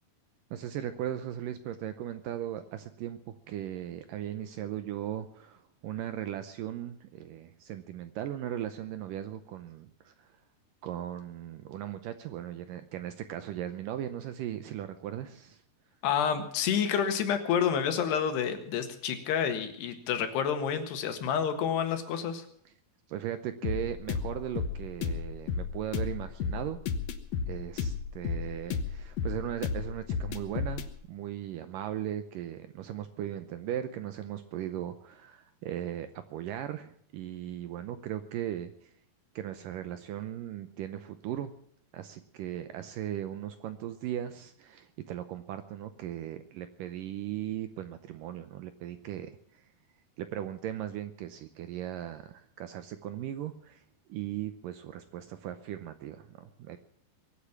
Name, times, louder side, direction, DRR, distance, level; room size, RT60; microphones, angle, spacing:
voice 1, 0.5-3.2 3.5-10.4 10.8-15.6 23.1-26.8 27.5-38.9 39.4-41.5 41.9-49.7 50.2-53.8 54.1-56.8, right 11 dB, 80° right, 10 dB, 2.0 m, -38 dB
voice 2, 16.0-22.5, left 8 dB, 90° left, 7 dB, 3.8 m, -29 dB
sound 1, 23.6-30.9, left 6 dB, 70° left, 1.7 m, -33 dB
23.0 x 8.5 x 7.2 m, 0.64 s
omnidirectional pair, 4.6 m